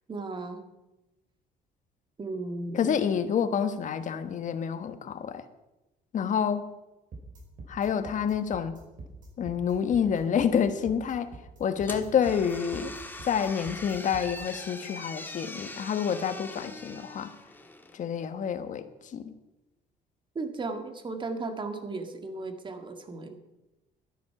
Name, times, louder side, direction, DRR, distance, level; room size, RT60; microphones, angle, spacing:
voice 1, 0.1-0.6 2.2-2.9 20.4-23.3, right 3 dB, 30° right, 7 dB, 1.8 m, -35 dB
voice 2, 2.7-5.4 6.1-6.6 7.7-8.7 9.4-11.3 11.6-12.9 13.2-17.3 17.9-19.3, left 7 dB, 50° left, 10 dB, 1.3 m, -28 dB
sound 1, 7.1-14.4, right 3 dB, 50° right, 4.9 m, -45 dB
sound 2, 11.8-18.0, left 2 dB, 10° left, 1.5 m, -42 dB
12.5 x 10.5 x 5.9 m, 1.0 s
cardioid pair, 110°, 17 cm